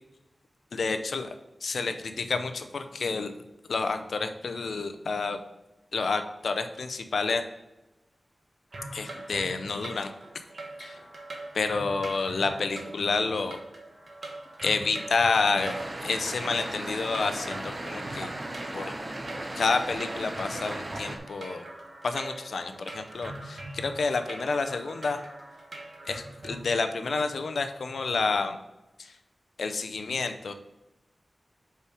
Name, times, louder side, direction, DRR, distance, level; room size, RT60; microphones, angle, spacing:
voice 1, 0.7-1.3 1.6-3.3 3.7-5.4 5.9-7.4 8.9-10.1 10.8-11.0 11.5-13.6 14.6-15.7 16.0-18.3 18.7-18.9 19.5-21.7 22.0-25.2 26.1-28.6 29.0-29.1 29.6-30.5, left 4 dB, 90° left, 7 dB, 0.6 m, -29 dB
sound 1, 8.7-26.6, right 2 dB, 60° right, 1.2 m, -43 dB
sound 2, 15.6-21.2, right 1 dB, 40° right, 1.0 m, -36 dB
5.5 x 4.9 x 4.9 m, 0.99 s
wide cardioid pair, 75°, 0 cm